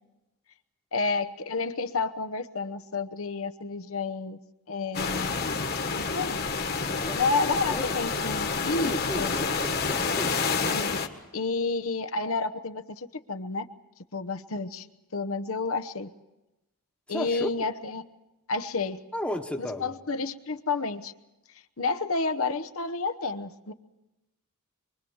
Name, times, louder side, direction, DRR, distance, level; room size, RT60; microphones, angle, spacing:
voice 1, 0.9-4.4 4.7-5.4 6.0-6.4 7.1-9.3 10.7-11.0 11.3-13.7 14.1-14.9 15.1-16.1 17.1-18.0 18.5-19.0 19.6-21.1 21.8-23.7, left 4 dB, 70° left, 9 dB, 1.0 m, -30 dB
sound 1, 4.9-11.1, left 4 dB, 45° left, 1.7 m, -28 dB
voice 2, 6.9-7.2 7.7-7.9 8.8-10.4 17.1-17.5 19.1-19.9, left 1 dB, 5° left, 4 dB, 1.2 m, -34 dB
24.5 x 23.5 x 7.2 m, 0.97 s
head